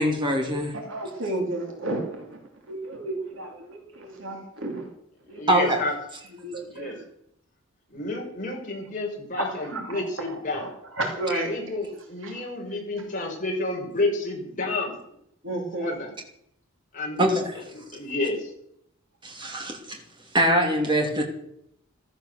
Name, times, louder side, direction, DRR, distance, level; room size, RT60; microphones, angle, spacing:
voice 1, 0.0-0.8 5.5-5.8 17.2-17.5 19.2-20.0 20.3-21.2, equal, 20° right, 1 dB, 2.8 m, -23 dB
voice 2, 0.9-2.4 2.7-4.9 5.3-5.4 6.4-7.0 9.7-10.0 11.0-11.5 12.2-12.4 15.4-15.9, right 2 dB, 60° right, 2 dB, 2.7 m, -32 dB
voice 3, 5.3-5.9 6.7-7.0 7.9-10.7 11.3-15.0 15.8-16.1 16.9-17.3 17.7-18.5, left 2 dB, 35° left, -1 dB, 5.1 m, -30 dB
15.0 x 14.5 x 6.7 m, 0.75 s
head